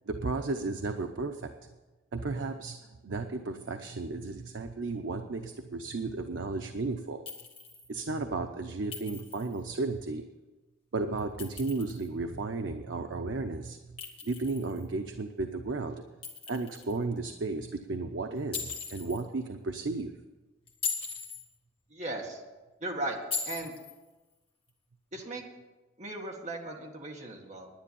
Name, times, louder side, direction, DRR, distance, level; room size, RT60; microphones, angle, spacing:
voice 1, 0.1-1.5 2.1-2.8 3.0-7.2 7.9-10.2 10.9-13.8 14.2-16.0 16.5-20.1, right 3 dB, 90° right, 6 dB, 0.7 m, -34 dB
Chink clink, 7.3-7.9 8.9-9.6 11.2-12.1 14.0-14.9 16.2-17.0 18.5-19.2 20.7-21.4 23.3-24.0, left 5 dB, 30° left, 1.6 m, -38 dB
voice 2, 21.9-22.4 22.8-23.2 23.4-23.7 25.1-25.4 26.0-27.7, right 2 dB, 40° right, 1 dB, 1.8 m, -37 dB
10.5 x 9.8 x 7.0 m, 1.2 s
head